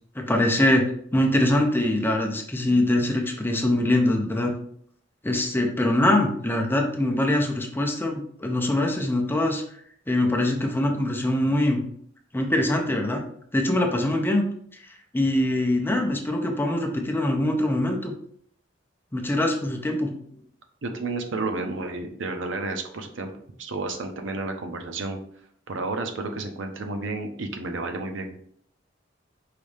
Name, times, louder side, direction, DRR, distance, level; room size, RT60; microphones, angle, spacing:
voice 1, 0.1-4.5 5.2-9.6 10.1-11.8 12.3-13.2 13.5-14.4 14.7-14.8 15.1-18.1 19.1-20.1, left 1 dB, 10° left, 2 dB, 0.6 m, -23 dB
voice 2, 20.8-23.3 23.6-25.2 25.7-28.4, right 3 dB, 75° right, 5 dB, 0.6 m, -31 dB
4.8 x 2.7 x 3.3 m, 0.63 s
head